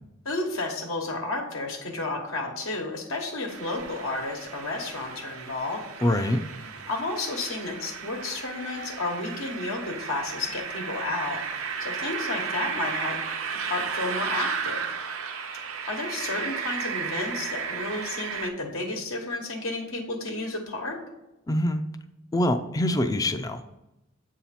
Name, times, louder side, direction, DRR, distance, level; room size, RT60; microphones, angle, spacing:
voice 1, 0.2-5.8 6.9-11.4 11.8-13.2 13.6-14.8 15.9-21.0, left 2 dB, 80° left, 1 dB, 1.1 m, -32 dB
sound 1, 3.5-18.5, right 6 dB, 80° right, 0.6 m, -34 dB
voice 2, 6.0-6.4 21.5-21.8 22.3-23.7, left 1 dB, 15° left, 9 dB, 0.3 m, -24 dB
8.0 x 2.8 x 5.7 m, 0.94 s
head